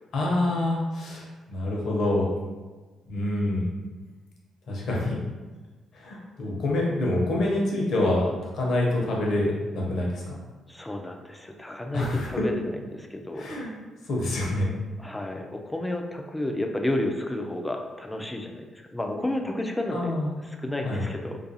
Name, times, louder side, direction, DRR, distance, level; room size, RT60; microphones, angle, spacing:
voice 1, 0.1-2.3 3.1-3.7 4.7-5.2 5.9-8.3 8.5-10.3 11.9-12.3 13.3-13.7 14.1-14.7 19.9-20.3 20.8-21.0, left 1 dB, 65° left, -2 dB, 0.7 m, -26 dB
voice 2, 10.7-13.5 15.0-20.1 20.4-21.4, left 1 dB, 10° left, 3 dB, 0.3 m, -31 dB
2.4 x 2.3 x 2.7 m, 1.3 s
cardioid pair, 90°, 0 cm